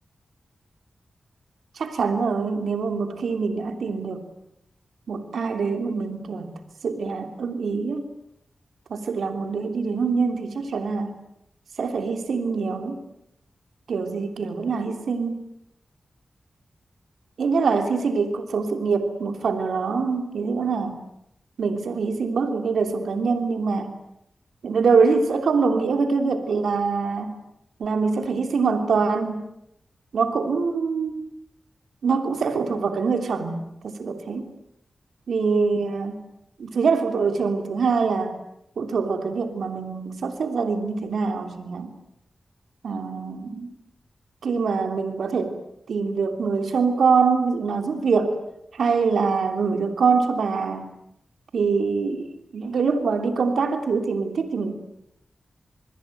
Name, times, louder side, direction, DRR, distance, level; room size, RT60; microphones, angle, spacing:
voice 1, 1.8-4.2 5.1-6.5 6.8-8.0 8.9-11.2 11.8-13.0 13.9-15.4 17.4-21.0 21.6-23.9 24.6-27.3 27.8-29.4 30.1-31.3 32.0-34.5 35.3-36.2 36.6-38.4 38.8-41.9 42.8-43.7 44.4-45.5 45.9-48.4 48.7-50.9 51.5-54.7, right 5 dB, 85° right, 7 dB, 3.1 m, -24 dB
28.0 x 21.5 x 9.2 m, 0.79 s
cardioid pair, 50°, 0 cm